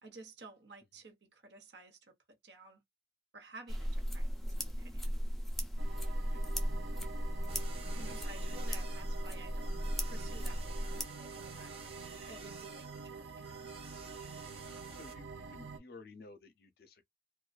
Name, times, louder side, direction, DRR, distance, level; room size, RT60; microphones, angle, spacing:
voice 1, 0.0-2.0 2.4-2.8 3.3-4.3 4.8-5.2 7.9-9.8 10.1-11.7 12.3-13.7, right 3 dB, 70° right, 0.9 m, -54 dB
sound 1, 3.7-11.0, equal, ahead, 0.4 m, -36 dB
sound 2, 5.8-15.8, right 4 dB, 90° right, 0.6 m, -47 dB
sound 3, 7.5-15.1, right 5 dB, 30° right, 0.7 m, -53 dB
voice 2, 7.9-8.9 14.9-17.0, left 3 dB, 55° left, 0.6 m, -54 dB
2.5 x 2.3 x 2.3 m
head